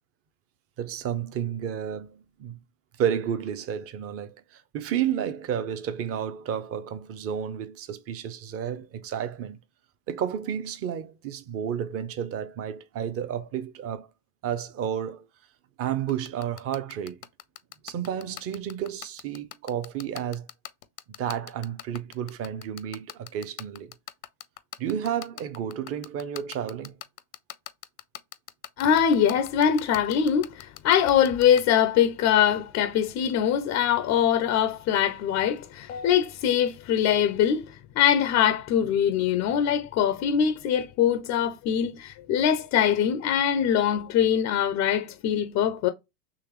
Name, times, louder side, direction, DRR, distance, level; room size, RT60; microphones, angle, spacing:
voice 1, 0.8-2.6 3.0-9.6 10.1-14.1 14.4-15.3 15.8-17.2 17.8-20.5 21.1-23.9 24.8-27.0 38.8-38.9, right 9 dB, 30° right, 0.5 m, -31 dB
sound 1, 16.1-31.6, left 15 dB, 85° left, 0.7 m, -39 dB
voice 2, 28.8-45.9, left 9 dB, 30° left, 0.4 m, -23 dB
3.8 x 3.0 x 2.9 m
hypercardioid pair, 105°, 49 cm